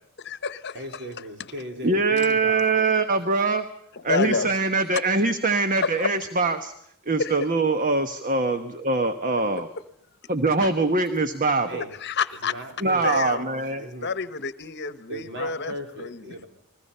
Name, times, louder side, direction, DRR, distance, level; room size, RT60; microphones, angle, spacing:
voice 1, 0.2-1.0 2.2-2.3 3.9-4.6 5.8-6.1 7.2-7.3 10.6-10.7 12.0-12.5 13.0-13.5 14.0-16.2, left 5 dB, 50° left, 13 dB, 1.1 m, -29 dB
voice 2, 0.7-2.9 11.6-12.0 12.4-13.2 13.8-14.1 15.1-16.5, right 1 dB, 55° right, 4 dB, 3.9 m, -37 dB
voice 3, 1.8-3.6 4.0-6.7 7.1-9.7 10.3-11.8 12.8-13.8, right 3 dB, 35° right, 9 dB, 1.1 m, -23 dB
29.5 x 21.5 x 5.6 m, 0.72 s
head